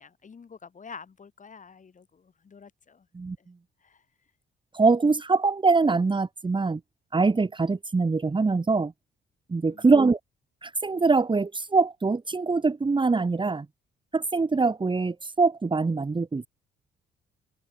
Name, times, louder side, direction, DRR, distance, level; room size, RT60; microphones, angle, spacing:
voice 1, 0.0-3.0 3.4-3.5 3.8-4.0 9.6-9.9, left 5 dB, 40° left, 6.2 m, -48 dB
voice 2, 4.7-6.8 7.1-8.9 9.5-10.2 10.6-13.7 14.1-16.5, right 4 dB, 25° right, 2.3 m, -23 dB
cardioid pair, 90°, 20 cm